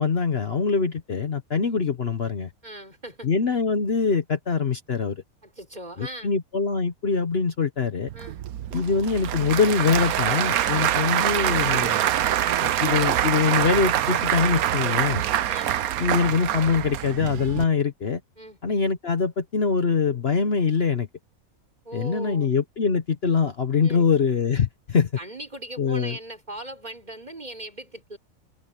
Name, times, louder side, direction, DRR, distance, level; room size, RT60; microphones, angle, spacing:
voice 1, 0.0-2.5 3.2-5.2 6.0-8.1 8.7-12.1 12.6-15.2 16.0-18.2 18.6-21.1 21.9-25.1 25.8-26.2, left 5 dB, 50° left, 1.2 m, -23 dB
voice 2, 2.6-3.3 5.4-6.3 8.1-8.4 15.5-15.7 18.4-18.6 21.8-22.5 23.7-24.1 25.2-28.2, right 1 dB, 30° right, 4.8 m, -39 dB
Applause / Crowd, 8.1-17.6, right 11 dB, 85° right, 1.2 m, -25 dB
omnidirectional pair, 1.5 m